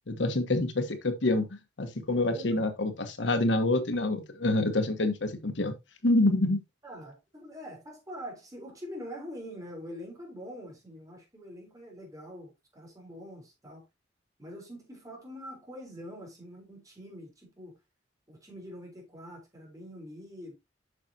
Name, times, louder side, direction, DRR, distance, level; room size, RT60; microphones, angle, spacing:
voice 1, 0.1-5.7 6.0-6.6, left 2 dB, 85° left, 1.2 m, -27 dB
voice 2, 2.1-2.7 6.8-13.9 14.4-17.8 18.3-20.5, equal, 20° right, 3.8 m, -44 dB
8.2 x 6.5 x 2.8 m
head